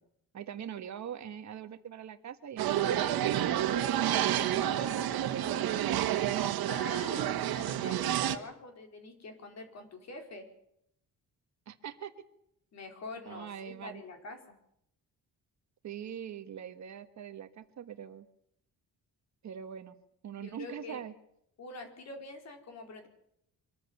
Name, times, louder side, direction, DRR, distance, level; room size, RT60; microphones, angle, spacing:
voice 1, 0.3-3.6 4.0-6.0 11.7-12.1 13.3-14.0 15.8-18.3 19.4-19.9 20.2-21.1, right 9 dB, 50° right, 9 dB, 1.4 m, -42 dB
sound 1, 2.6-8.4, right 11 dB, 75° right, 1.8 m, -29 dB
voice 2, 6.6-10.5 12.7-14.5 20.4-21.0 21.6-23.1, left 2 dB, 45° left, 5 dB, 4.5 m, -45 dB
24.5 x 14.5 x 9.6 m, 0.74 s
cardioid pair, 180°, 37 cm